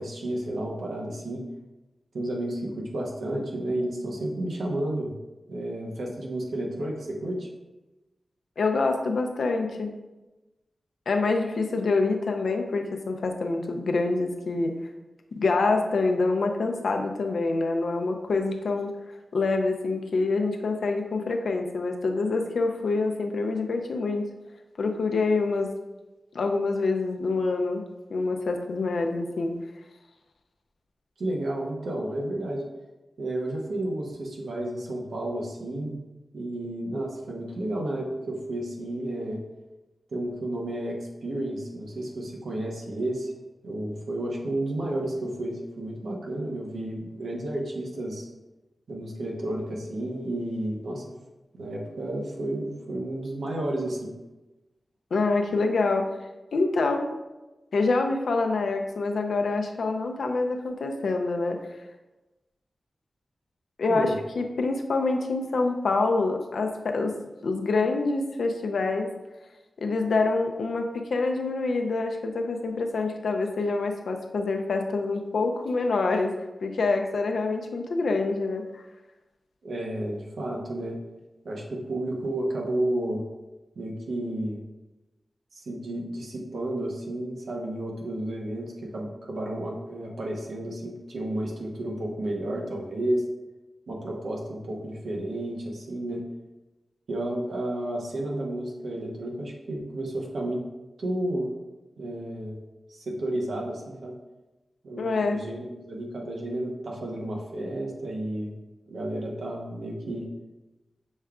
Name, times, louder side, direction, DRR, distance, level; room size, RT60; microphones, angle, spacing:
voice 1, 0.0-1.4 2.1-5.1 5.5-7.5 31.2-32.6 33.2-36.0 36.3-39.4 40.1-43.3 43.6-48.3 48.9-51.0 51.5-54.1 63.9-64.2 79.6-81.0 81.4-83.2 83.8-84.6 85.5-93.2 93.9-96.2 97.1-100.6 101.0-101.5 102.0-102.6 102.9-104.1 104.8-108.5 108.9-110.3, right 1 dB, 85° right, -1 dB, 0.9 m, -31 dB
voice 2, 8.6-9.9 11.1-14.8 15.4-18.9 19.3-24.3 24.8-25.7 26.3-27.8 28.1-29.6 55.1-56.1 56.5-57.1 57.7-61.6 63.8-64.1 64.4-67.1 67.4-69.1 69.8-76.3 76.6-78.8 105.0-105.4, left 3 dB, 85° left, 4 dB, 0.5 m, -26 dB
6.3 x 3.6 x 2.3 m, 1.1 s
cardioid pair, 50°, 0 cm